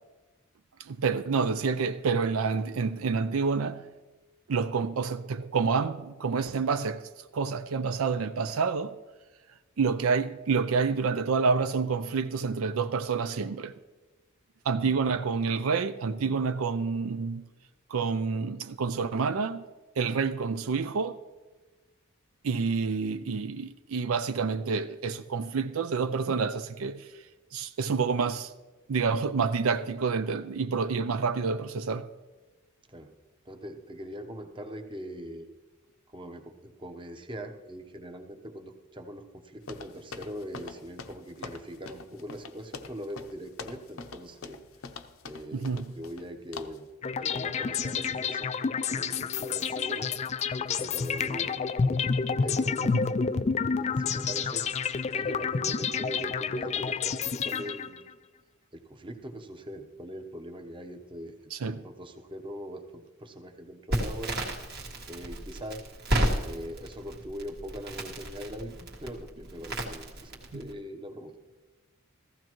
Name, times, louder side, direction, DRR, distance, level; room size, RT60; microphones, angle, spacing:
voice 1, 0.8-3.9 4.5-9.0 9.8-13.7 14.6-17.4 17.9-19.6 20.0-21.2 22.4-27.2 27.5-28.5 28.9-32.1 45.5-45.9 52.9-53.1 61.5-61.8 70.5-70.6, right 5 dB, 75° right, 0.5 m, -28 dB
voice 2, 33.4-35.5 36.1-44.6 45.2-46.9 47.2-50.1 50.6-53.0 54.0-58.1 58.7-64.4 65.1-65.8 66.4-71.3, equal, 25° right, 0.9 m, -41 dB
sound 1, 39.7-46.3 46.5-46.9, left 4 dB, 70° left, 0.7 m, -44 dB
sound 2, 47.0-58.1, left 5 dB, 30° left, 0.3 m, -29 dB
Crackle, 63.9-70.7, right 1 dB, 50° right, 1.7 m, -33 dB
15.0 x 15.0 x 3.1 m
head